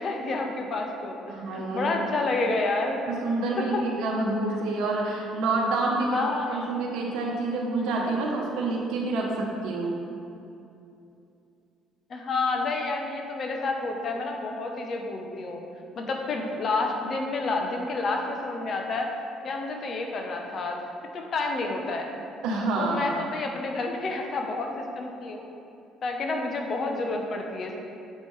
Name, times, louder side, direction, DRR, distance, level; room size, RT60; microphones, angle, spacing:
voice 1, 0.0-3.0 3.7-3.8 6.1-6.8 12.1-15.6 15.9-19.1 19.4-20.8 21.1-22.1 22.8-25.4 26.0-27.8, left 3 dB, 50° left, 2 dB, 0.8 m, -29 dB
voice 2, 1.3-1.9 3.1-10.0 22.4-23.1, right 2 dB, 75° right, -2 dB, 0.9 m, -28 dB
7.3 x 5.1 x 3.2 m, 2.7 s
supercardioid pair, 65°, 0 cm